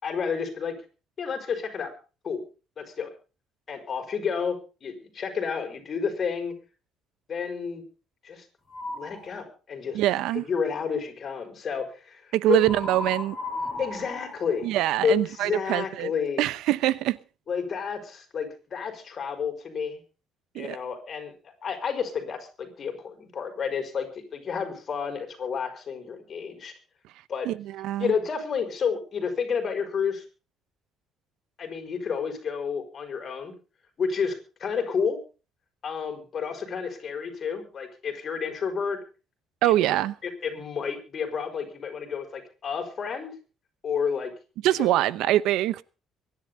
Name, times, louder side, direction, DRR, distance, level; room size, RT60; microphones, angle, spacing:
voice 1, 0.0-0.7 1.2-1.9 2.2-2.4 2.8-3.1 3.7-6.5 7.3-7.8 8.2-8.4 8.9-10.0 10.3-12.6 13.8-14.7 15.0-16.5 17.5-20.0 20.6-26.7 27.3-27.5 28.0-30.2 31.6-33.5 34.0-35.2 35.8-39.0 39.6-39.7 40.2-43.3 43.8-44.3 44.8-44.9, left 6 dB, 35° left, 5.6 m, -30 dB
Owl hoot, 8.7-9.3 12.5-15.3, left 2 dB, 15° left, 6.1 m, -35 dB
voice 2, 9.9-10.4 12.3-13.4 14.6-16.1 16.4-17.2 20.5-20.8 27.5-28.1 39.6-40.1 44.6-45.8, right 14 dB, 75° right, 0.8 m, -24 dB
24.0 x 11.0 x 3.9 m
cardioid pair, 145°, 0 cm